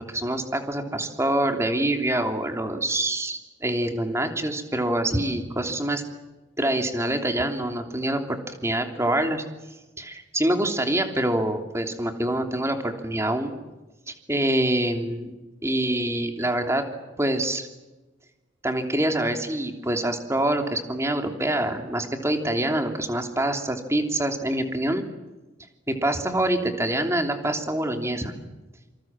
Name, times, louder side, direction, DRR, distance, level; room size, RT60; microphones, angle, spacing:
voice 1, 0.0-6.0 6.6-9.4 10.0-13.5 14.1-15.3 15.6-16.8 17.2-17.7 18.6-25.0 25.9-28.4, right 1 dB, 15° right, 5 dB, 3.1 m, -25 dB
27.0 x 26.5 x 7.6 m, 1.1 s
head